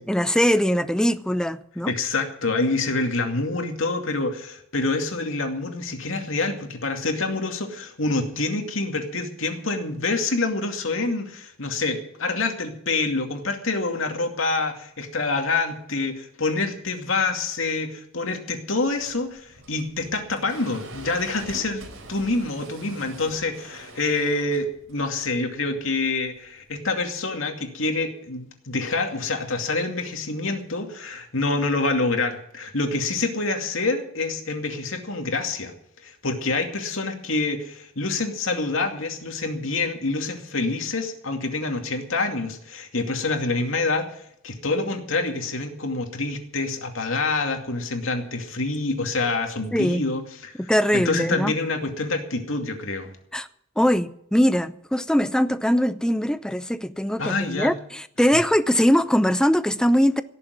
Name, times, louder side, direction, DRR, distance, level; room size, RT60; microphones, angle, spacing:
voice 1, 0.0-1.9 49.7-50.0 50.7-51.5 53.3-53.5 53.8-60.2, equal, 5° left, 0.6 m, -21 dB
voice 2, 1.9-21.8 22.1-35.7 36.0-50.6 50.9-53.1 57.2-57.7, left 3 dB, 70° left, 2.4 m, -26 dB
sound 1, 18.8-26.7, right 2 dB, 85° right, 3.8 m, -44 dB
17.5 x 7.1 x 9.5 m
head